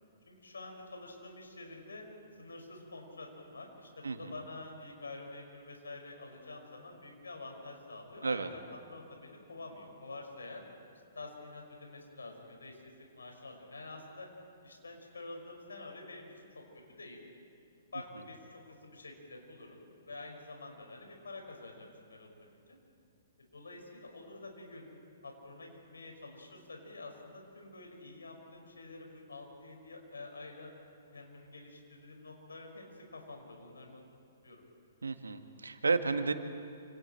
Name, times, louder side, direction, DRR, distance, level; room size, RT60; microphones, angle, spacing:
voice 1, 0.3-2.0 2.4-10.6 11.1-14.3 14.6-16.6 16.9-17.2 17.9-22.8 23.5-24.9 25.2-30.7 31.1-32.8 33.1-34.6, left 2 dB, 80° left, 2 dB, 5.5 m, -48 dB
voice 2, 35.0-36.3, right 4 dB, 80° right, 8 dB, 1.6 m, -31 dB
28.5 x 27.0 x 4.5 m, 2.5 s
figure-of-eight pair, 120°, 0 cm